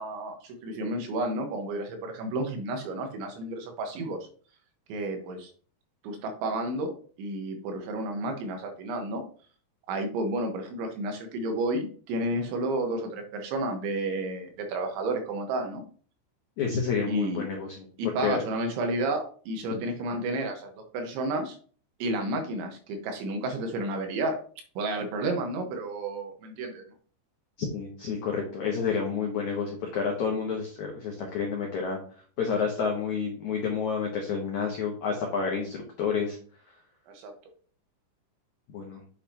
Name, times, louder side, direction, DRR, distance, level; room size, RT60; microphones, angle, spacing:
voice 1, 0.0-4.2 4.9-5.5 6.0-9.2 9.9-15.8 17.1-17.4 18.0-21.6 22.0-24.4 24.8-26.8 37.1-37.3, right 2 dB, 80° right, 4 dB, 3.6 m, -31 dB
voice 2, 16.6-17.9 18.2-18.4 27.6-32.0 32.4-36.4 38.7-39.0, left 6 dB, 85° left, 0 dB, 1.6 m, -29 dB
8.7 x 6.7 x 2.9 m, 0.43 s
omnidirectional pair, 5.4 m